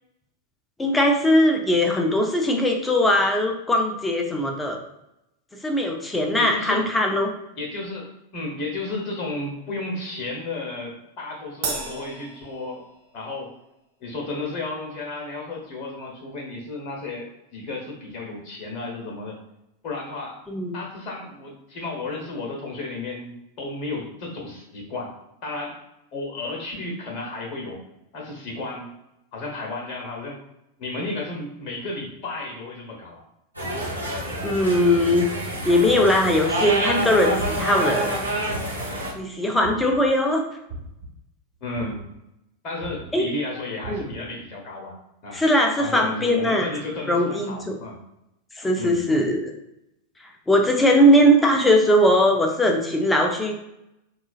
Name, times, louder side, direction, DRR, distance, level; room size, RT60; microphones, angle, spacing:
voice 1, 0.8-4.8 5.6-7.3 20.5-20.8 34.4-38.3 39.1-40.4 43.1-43.3 43.9-44.0 45.3-46.7 47.1-47.8 48.6-49.5 50.5-53.5, equal, 10° left, 2 dB, 0.5 m, -20 dB
voice 2, 6.3-6.8 7.6-12.8 13.1-13.5 14.0-19.4 19.8-20.4 20.7-25.8 26.1-27.8 28.1-28.9 29.3-30.4 30.8-33.2 41.6-42.1 42.6-44.9 45.2-45.4 45.8-48.0 48.8-49.0, left 2 dB, 40° left, 0 dB, 1.0 m, -33 dB
Crash cymbal, 11.6-13.3, right 4 dB, 50° right, 0.8 m, -33 dB
sound 1, 33.5-39.1, right 1 dB, 85° right, 0.9 m, -27 dB
sound 2, 37.4-37.8 38.5-39.0 39.6-40.1 40.7-41.1 41.8-42.2 42.8-43.1 43.8-44.2, right 1 dB, 30° right, 1.2 m, -36 dB
3.8 x 2.4 x 2.4 m, 0.86 s
figure-of-eight pair, 90°, 0 cm